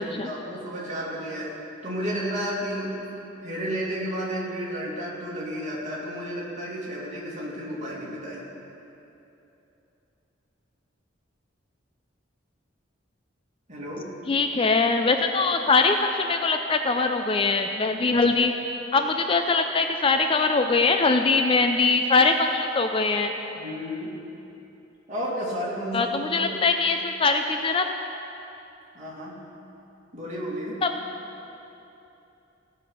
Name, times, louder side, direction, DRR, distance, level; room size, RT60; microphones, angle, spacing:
voice 1, 0.0-1.5 1.8-3.1 3.4-8.4 13.7-14.1 23.6-24.1 25.1-26.6 28.9-29.4 30.1-30.8, equal, 40° right, -5 dB, 2.5 m, -32 dB
voice 2, 14.3-18.5 18.9-23.3 25.9-28.0 30.8-30.9, left 3 dB, 30° left, 6 dB, 0.4 m, -22 dB
16.5 x 6.4 x 5.7 m, 2.9 s
head